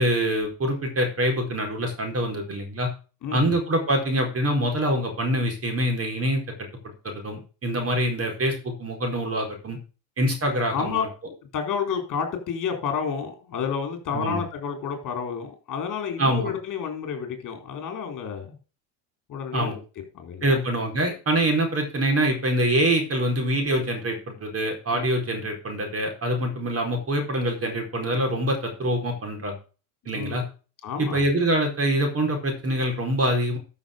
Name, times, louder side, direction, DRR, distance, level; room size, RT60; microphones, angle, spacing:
voice 1, 0.0-2.9 3.3-6.4 7.0-9.8 10.2-11.1 14.1-14.4 16.2-16.5 19.5-19.8 20.4-29.5 30.1-30.4 31.0-33.6, right 1 dB, 30° right, 3 dB, 4.5 m, -25 dB
voice 2, 3.2-3.6 10.7-11.1 11.5-18.6 19.3-19.8 20.1-20.6 24.9-25.1 30.1-30.5 30.8-31.3, left 7 dB, 40° left, 4 dB, 4.1 m, -30 dB
13.0 x 6.3 x 5.2 m, 0.35 s
hypercardioid pair, 90°, 47 cm